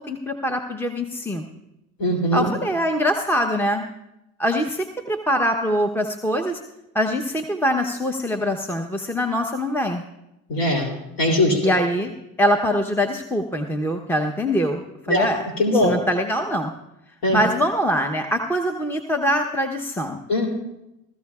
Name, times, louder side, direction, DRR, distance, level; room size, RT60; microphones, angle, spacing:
voice 1, 0.1-1.4 2.3-3.9 4.4-6.6 6.9-10.0 11.6-12.1 12.4-15.5 15.7-16.7 17.3-20.2, equal, 5° left, 5 dB, 0.9 m, -23 dB
voice 2, 2.0-2.5 10.5-10.9 11.2-11.6 15.1-15.3 15.6-15.9 17.2-17.4 20.3-20.5, left 1 dB, 55° left, 0 dB, 3.2 m, -20 dB
19.0 x 15.5 x 2.4 m, 0.90 s
supercardioid pair, 75°, 42 cm